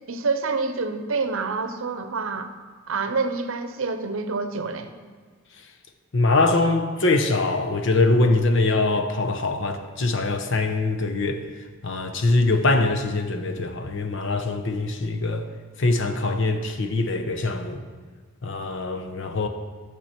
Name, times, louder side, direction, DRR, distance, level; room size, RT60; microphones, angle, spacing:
voice 1, 0.1-2.5 2.9-4.9, right 4 dB, 70° right, 9 dB, 0.7 m, -27 dB
voice 2, 6.1-11.4 11.8-15.4 15.8-17.8 18.4-19.5, left 2 dB, 60° left, 6 dB, 0.8 m, -23 dB
11.5 x 6.9 x 4.4 m, 1.5 s
head